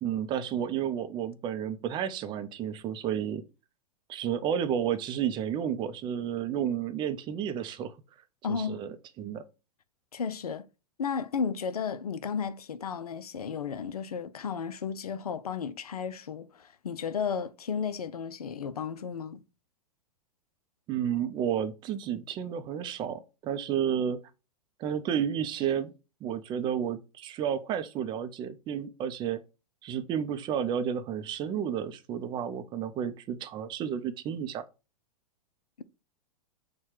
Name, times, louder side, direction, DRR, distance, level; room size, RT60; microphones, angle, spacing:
voice 1, 0.0-3.4 4.1-7.9 8.5-9.4 20.9-24.2 24.8-25.9 26.2-29.4 29.8-34.6, right 9 dB, 25° right, 0.5 m, -31 dB
voice 2, 8.4-8.8 10.1-10.7 11.0-19.4, left 6 dB, 80° left, 0.5 m, -33 dB
4.2 x 2.2 x 4.6 m
figure-of-eight pair, 105°, 19 cm